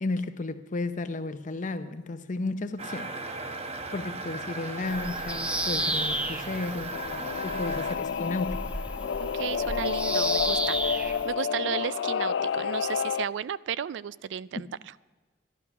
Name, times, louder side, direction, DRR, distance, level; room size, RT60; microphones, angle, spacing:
voice 1, 0.0-3.1 3.9-7.0 7.4-8.6, left 2 dB, 45° left, 0.7 m, -33 dB
sound 1, 2.8-8.0, right 3 dB, 35° right, 0.9 m, -37 dB
Bird vocalization bird call bird song, 4.9-11.3, right 1 dB, 5° right, 0.5 m, -33 dB
Singing / Musical instrument, 6.9-13.3, left 7 dB, 70° left, 0.3 m, -30 dB
voice 2, 9.2-14.7, right 8 dB, 80° right, 0.3 m, -34 dB
12.0 x 12.0 x 6.0 m
head